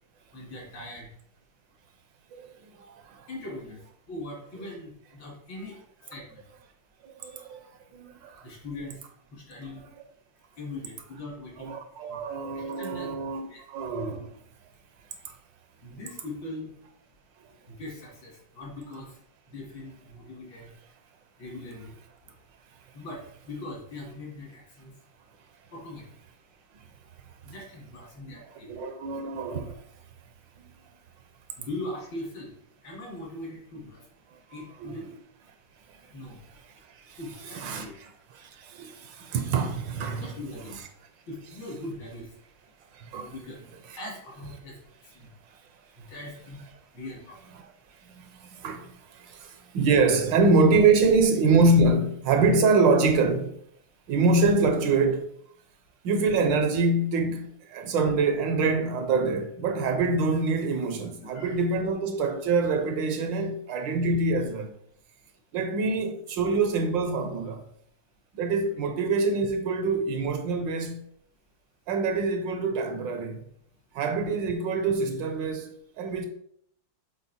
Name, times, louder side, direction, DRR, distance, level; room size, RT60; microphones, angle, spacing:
voice 1, 0.3-1.1 3.3-3.8 4.1-5.8 6.1-6.4 8.4-9.0 9.3-9.8 10.6-11.7 12.1-12.2 12.5-13.1 13.5-13.6 15.8-16.7 17.7-19.1 19.5-20.7 21.4-21.9 22.9-24.9 25.7-26.0 27.4-28.7 31.6-32.5 32.8-34.0 34.5-35.1 36.1-36.4 37.2-37.9 40.1-40.8 41.3-42.3 43.3-43.7 43.9-44.8 45.1-45.3 46.0-46.6 46.9-47.3 61.2-61.6, left 2 dB, 70° left, 3.4 m, -40 dB
voice 2, 2.3-3.3 7.0-7.7 7.9-8.5 11.6-14.4 15.2-15.3 28.6-29.8 34.8-35.0 36.9-37.2 37.5-40.3 42.9-43.3 43.9-44.0 48.0-53.6 54.1-55.4 56.0-64.7 65.5-67.7 68.3-71.0 71.9-73.4 73.9-76.3, right 3 dB, 70° right, 1.3 m, -25 dB
7.2 x 4.2 x 4.2 m
omnidirectional pair, 2.3 m